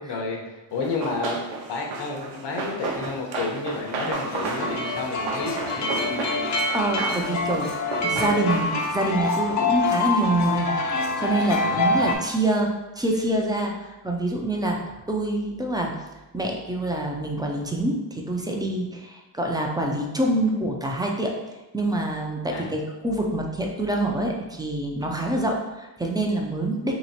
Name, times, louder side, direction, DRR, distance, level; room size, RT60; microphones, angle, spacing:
voice 1, 0.0-1.4 1.7-5.9 11.6-12.0 22.5-22.7, left 3 dB, 65° left, 0 dB, 1.0 m, -31 dB
Run, 0.8-9.0, right 3 dB, 85° right, 0.8 m, -33 dB
sound 1, 4.1-12.1, left 2 dB, 40° left, 0.6 m, -26 dB
voice 2, 6.7-10.8 11.2-12.7 13.0-14.8 15.1-15.9 16.3-21.3 21.7-26.9, right 1 dB, 10° right, 0 dB, 0.4 m, -26 dB
3.0 x 3.0 x 4.2 m, 1.1 s
cardioid pair, 120°, 44 cm